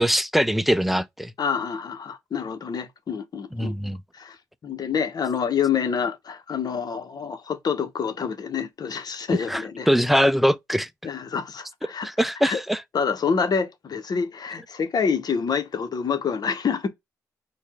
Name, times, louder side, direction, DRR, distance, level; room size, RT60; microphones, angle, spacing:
voice 1, 0.0-1.3 3.5-4.0 9.5-10.9 12.0-12.8, equal, ahead, 0.6 m, -22 dB
voice 2, 1.4-3.7 4.1-4.4 4.6-9.9 11.0-12.1 12.4-12.6 12.9-16.9, left 6 dB, 55° left, 1.2 m, -27 dB
4.6 x 2.6 x 3.6 m
hypercardioid pair, 45°, 8 cm